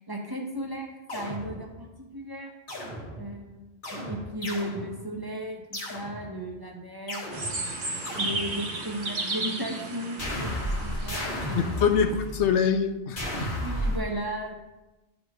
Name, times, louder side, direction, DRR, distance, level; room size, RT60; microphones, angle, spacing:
voice 1, 0.1-2.5 3.2-7.5 8.1-11.7 13.5-14.5, equal, 20° right, 0 dB, 1.0 m, -35 dB
sound 1, 1.1-1.9 2.7-3.4 3.8-5.2 5.7-6.5 7.1-8.9 10.2-12.7 13.2-14.0, equal, 45° left, 1.7 m, -34 dB
sound 2, 7.3-11.9, right 2 dB, 45° right, 1.3 m, -34 dB
voice 2, 11.5-13.5, left 6 dB, 80° left, 8 dB, 0.9 m, -25 dB
11.5 x 5.2 x 3.0 m, 1.0 s
omnidirectional pair, 1.2 m